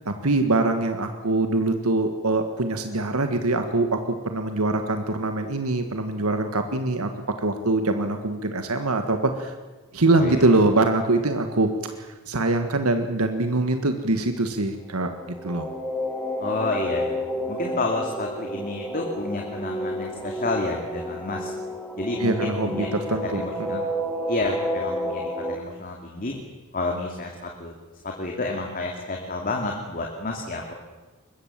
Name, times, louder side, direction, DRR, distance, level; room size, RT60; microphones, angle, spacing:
voice 1, 0.1-7.1 7.4-9.5 9.9-15.7 22.2-23.8, right 2 dB, 85° right, 7 dB, 1.6 m, -23 dB
voice 2, 10.1-10.5 16.4-21.5 22.0-23.9 24.3-26.4 26.7-27.7 28.0-30.7, left 2 dB, 40° left, 1 dB, 2.7 m, -30 dB
sound 1, 14.9-25.6, equal, ahead, 2.2 m, -31 dB
24.0 x 21.0 x 7.5 m, 1.3 s
head